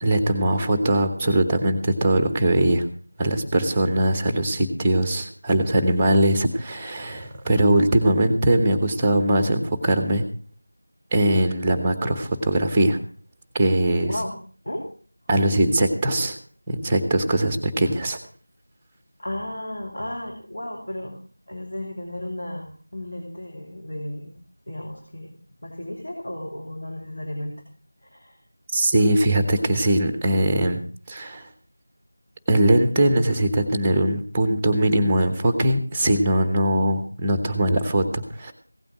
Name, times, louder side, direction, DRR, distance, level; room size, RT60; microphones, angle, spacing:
voice 1, 0.0-2.9 3.2-10.2 11.1-13.0 13.5-14.1 15.3-16.3 16.7-18.2 28.7-30.8 31.1-31.5 32.5-38.5, right 1 dB, 5° right, 8 dB, 1.1 m, -21 dB
voice 2, 14.0-14.3 14.6-14.9 19.2-21.2 21.5-24.3 24.7-25.3 25.6-27.6 28.0-28.4, left 1 dB, 45° left, 0 dB, 3.0 m, -34 dB
16.5 x 9.0 x 6.1 m, 0.41 s
figure-of-eight pair, 170°, 0 cm